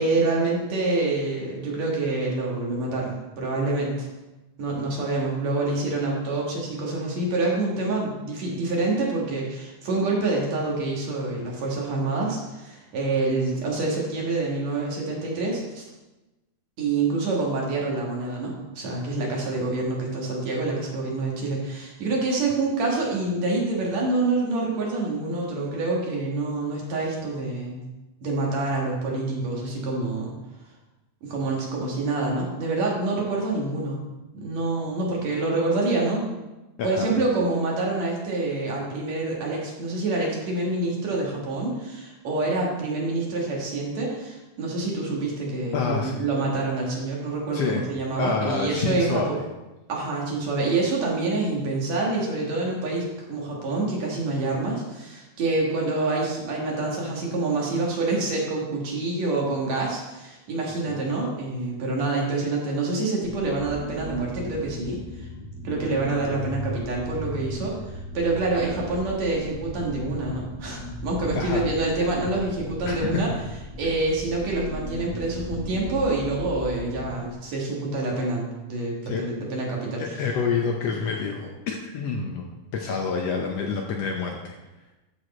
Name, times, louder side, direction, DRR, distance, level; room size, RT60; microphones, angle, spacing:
voice 1, 0.0-4.1 4.6-15.8 16.8-27.8 28.2-30.3 31.2-34.0 34.3-36.3 36.8-49.4 49.9-65.3 65.6-73.3 73.8-80.1, right 2 dB, 65° right, -2 dB, 2.9 m, -27 dB
voice 2, 45.7-46.2 47.5-47.9 48.2-49.3 71.3-71.7 72.9-73.1 79.1-79.2 80.0-84.6, left 5 dB, 70° left, 1 dB, 1.6 m, -28 dB
sound 1, 63.2-77.3, equal, 5° right, 1.3 m, -37 dB
13.0 x 4.8 x 4.3 m, 1.0 s
omnidirectional pair, 3.5 m